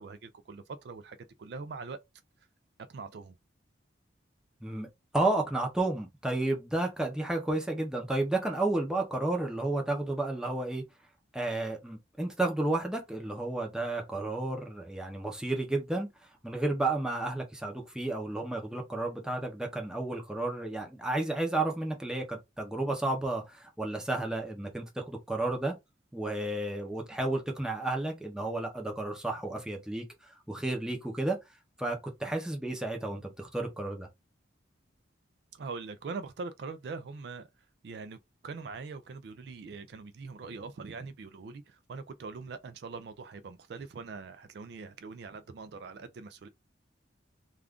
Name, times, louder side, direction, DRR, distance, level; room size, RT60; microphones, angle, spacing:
voice 1, 0.0-2.0 2.9-3.4 35.5-37.5 37.8-38.2 38.4-46.5, right 4 dB, 55° right, 0.3 m, -42 dB
voice 2, 5.1-10.8 11.3-16.1 16.4-25.7 26.1-31.4 31.8-34.1, right 2 dB, 5° right, 0.6 m, -32 dB
2.4 x 2.4 x 3.4 m
head